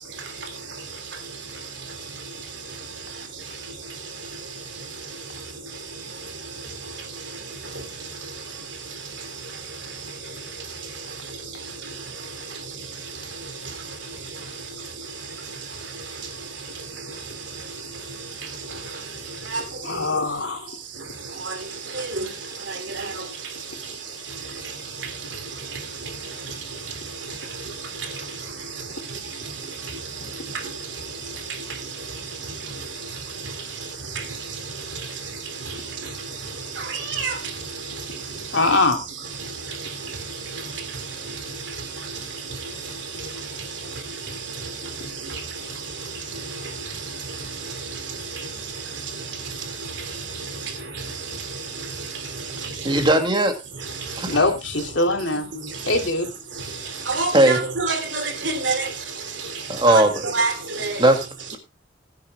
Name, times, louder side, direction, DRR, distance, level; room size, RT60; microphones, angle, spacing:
voice 1, 19.8-20.8 38.5-39.0 54.3-55.4 55.9-56.3, left 2 dB, 75° left, 3.0 m, -22 dB
voice 2, 21.9-22.3 22.7-23.3 24.6-24.7 25.0-25.1 25.6-26.2 26.4-26.5 27.3-27.4 27.6-27.7 28.0-28.2 29.4-29.5 29.8-30.8 31.0-31.1 31.5-31.8 32.4-32.9 33.4-33.5 34.1-34.6 34.9-35.1 35.5-36.1 36.4-39.0 39.4-45.7 46.0-48.8 49.1-53.0 53.8-54.3 55.6-56.0 56.6-59.0 59.4-61.1 61.5-61.6, right 4 dB, 65° right, 3.2 m, -31 dB
voice 3, 52.8-53.5 54.2-54.4 57.3-57.6 59.7-60.1 61.0-61.2, right 1 dB, 25° right, 2.5 m, -17 dB
19.5 x 10.5 x 2.4 m
head